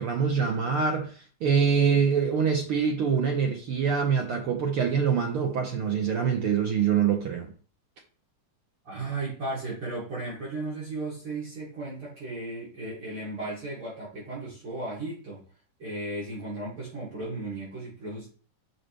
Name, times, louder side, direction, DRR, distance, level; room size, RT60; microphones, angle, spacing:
voice 1, 0.0-7.5, right 6 dB, 75° right, 1.2 m, -25 dB
voice 2, 8.8-15.4 15.8-18.3, right 2 dB, 40° right, 4.1 m, -35 dB
8.4 x 6.2 x 3.4 m
omnidirectional pair, 3.8 m